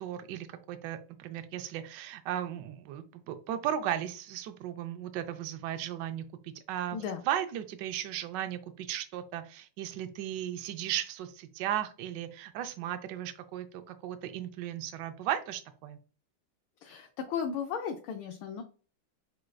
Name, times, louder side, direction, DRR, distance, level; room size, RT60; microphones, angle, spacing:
voice 1, 0.0-7.0 7.3-16.0, right 11 dB, 75° right, 9 dB, 1.0 m, -36 dB
voice 2, 6.9-7.2 16.8-18.6, left 7 dB, 75° left, 3 dB, 1.3 m, -35 dB
7.4 x 2.5 x 2.3 m, 0.37 s
omnidirectional pair, 2.4 m